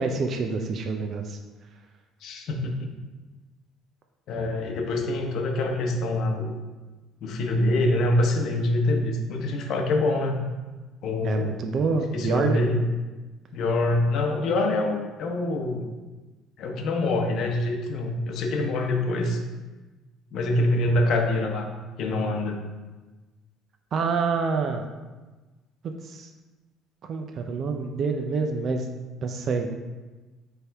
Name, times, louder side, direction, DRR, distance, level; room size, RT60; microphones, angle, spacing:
voice 1, 0.0-1.4 11.2-12.6 23.9-24.9 26.0-26.3 27.0-28.9 29.2-29.7, right 4 dB, 40° right, 4 dB, 0.4 m, -27 dB
voice 2, 2.2-2.6 4.3-6.6 7.2-10.4 11.0-11.6 12.1-12.8 13.5-15.9 16.6-19.4 20.3-21.7 22.0-22.6, left 2 dB, 50° left, 3 dB, 0.8 m, -25 dB
8.6 x 3.5 x 3.4 m, 1.2 s
cardioid pair, 150°, 0 cm